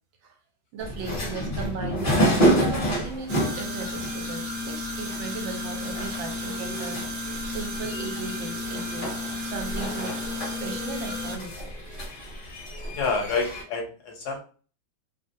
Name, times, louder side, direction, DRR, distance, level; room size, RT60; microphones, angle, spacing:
voice 1, 0.7-9.1 9.4-11.5, right 4 dB, 80° right, 3 dB, 1.5 m, -37 dB
sound 1, 0.8-13.6, right 1 dB, 35° left, 1.0 m, -29 dB
sound 2, 3.3-11.4, left 2 dB, 60° right, 1.3 m, -33 dB
voice 2, 12.9-14.4, left 4 dB, 70° left, 1 dB, 1.1 m, -28 dB
3.1 x 2.4 x 2.6 m, 0.38 s
omnidirectional pair, 2.1 m